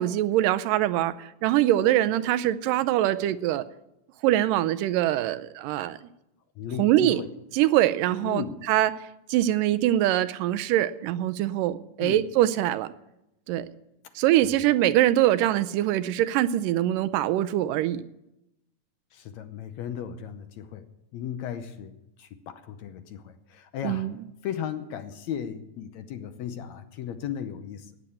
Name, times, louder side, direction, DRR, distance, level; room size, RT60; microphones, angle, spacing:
voice 1, 0.0-3.6 4.2-6.0 6.8-7.2 7.6-8.9 9.3-12.9 13.5-13.7 14.2-18.0 23.8-24.1, right 13 dB, 90° right, 14 dB, 2.3 m, -23 dB
voice 2, 6.6-7.3 8.2-8.5 12.0-12.3 14.4-14.5 19.1-20.9 21.1-24.1 24.4-28.0, left 9 dB, 70° left, 8 dB, 1.8 m, -36 dB
14.0 x 9.1 x 8.6 m, 0.89 s
omnidirectional pair, 3.8 m